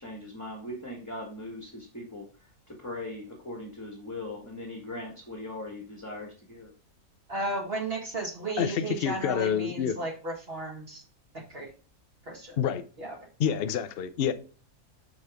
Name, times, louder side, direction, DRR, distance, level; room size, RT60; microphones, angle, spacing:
voice 1, 0.0-6.7, left 1 dB, 10° left, 1.4 m, -40 dB
voice 2, 7.3-11.0 11.5-11.7 12.3-12.6 13.0-13.2, right 2 dB, 40° right, 1.9 m, -34 dB
voice 3, 8.6-10.0 12.6-12.8 13.4-14.3, left 8 dB, 50° left, 0.8 m, -27 dB
6.4 x 6.3 x 3.5 m
omnidirectional pair, 1.6 m